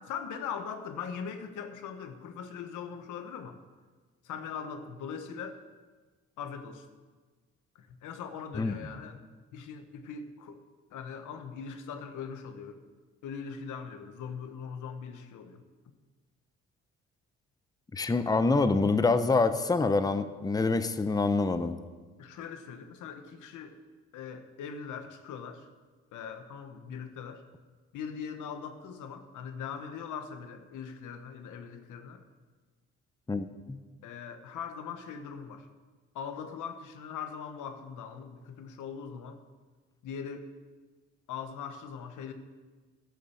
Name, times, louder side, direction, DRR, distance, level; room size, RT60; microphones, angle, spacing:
voice 1, 0.0-3.6 4.2-5.6 6.4-6.9 7.7-9.2 9.5-10.6 10.9-12.9 13.2-15.6 22.2-23.8 24.1-25.7 26.1-27.4 27.9-32.2 34.0-35.7 36.1-39.4 40.0-40.5 41.3-42.3, left 6 dB, 85° left, 8 dB, 1.1 m, -41 dB
voice 2, 17.9-21.8 33.3-33.8, left 3 dB, 15° left, 11 dB, 0.6 m, -26 dB
12.5 x 6.4 x 7.0 m, 1.4 s
cardioid pair, 90°, 30 cm